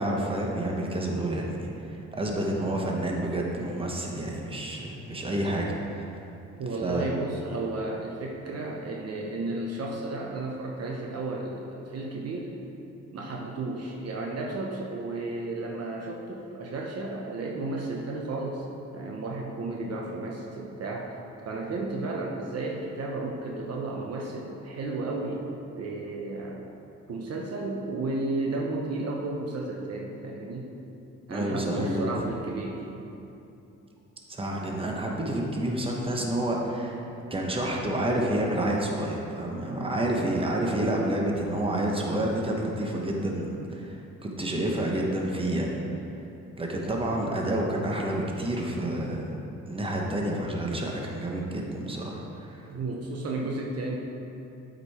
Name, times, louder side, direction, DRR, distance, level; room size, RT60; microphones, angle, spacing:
voice 1, 0.0-6.1 6.8-7.1 31.3-32.0 34.3-37.0 37.3-45.7 46.6-49.2 49.7-52.6, right 1 dB, 20° right, -1 dB, 1.1 m, -29 dB
voice 2, 6.6-12.6 13.1-18.7 18.9-21.1 21.4-26.7 27.1-30.7 31.3-32.9 52.6-54.0, right 2 dB, 55° right, -1 dB, 0.9 m, -33 dB
8.2 x 5.3 x 4.3 m, 2.8 s
cardioid pair, 90°, 30 cm